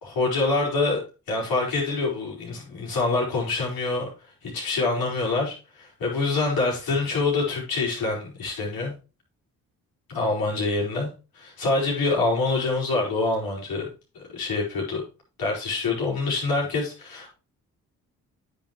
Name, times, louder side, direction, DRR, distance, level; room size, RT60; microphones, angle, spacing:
voice 1, 0.0-1.0 1.3-4.1 4.4-8.9 10.1-13.9 14.3-15.0 15.4-17.3, left 3 dB, 75° left, -3 dB, 5.0 m, -26 dB
9.5 x 7.8 x 3.0 m, 0.31 s
supercardioid pair, 55°, 36 cm